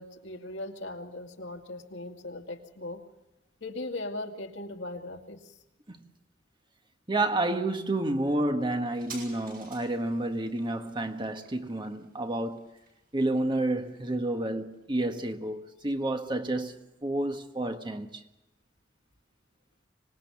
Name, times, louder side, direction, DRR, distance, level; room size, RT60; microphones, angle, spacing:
voice 1, 0.0-3.0 3.6-5.5, left 2 dB, 85° left, 2.3 m, -39 dB
voice 2, 7.1-12.7 13.1-18.2, right 2 dB, 25° right, 1.5 m, -30 dB
sound 1, 8.9-16.0 16.3-16.4, right 5 dB, 55° right, 7.9 m, -52 dB
25.5 x 19.5 x 7.1 m
head